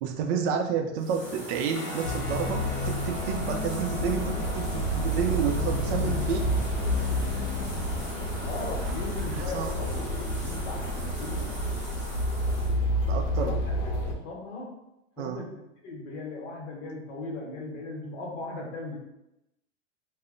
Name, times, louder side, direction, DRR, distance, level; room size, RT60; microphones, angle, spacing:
voice 1, 0.0-6.4 9.3-9.9 13.1-13.5 15.2-15.4, right 6 dB, 65° right, 4 dB, 0.5 m, -30 dB
sound 1, 1.0-12.8, equal, 5° right, 0.7 m, -40 dB
sound 2, 1.7-13.5, left 2 dB, 30° left, 0.6 m, -44 dB
sound 3, 2.0-14.1, equal, 85° left, 0.7 m, -29 dB
voice 2, 8.0-11.6 13.2-13.5 14.0-14.8 15.2-15.5 15.8-19.0, left 2 dB, 60° left, -1 dB, 1.0 m, -38 dB
2.1 x 2.0 x 3.7 m, 0.89 s
supercardioid pair, 140°, 36 cm